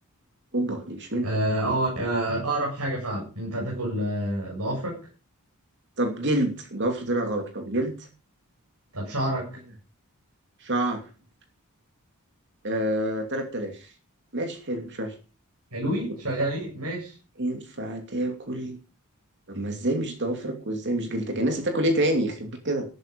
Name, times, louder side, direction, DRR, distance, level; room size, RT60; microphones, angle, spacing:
voice 1, 0.5-1.3 6.0-8.1 10.6-11.0 12.6-13.9 14.3-15.1 16.4-16.5 17.4-18.8 19.5-22.8, right 1 dB, 55° right, 4 dB, 2.8 m, -27 dB
voice 2, 1.2-5.0 8.9-9.6 15.7-17.2, right 1 dB, 90° right, -3 dB, 7.9 m, -28 dB
13.5 x 12.5 x 5.4 m, 0.34 s
head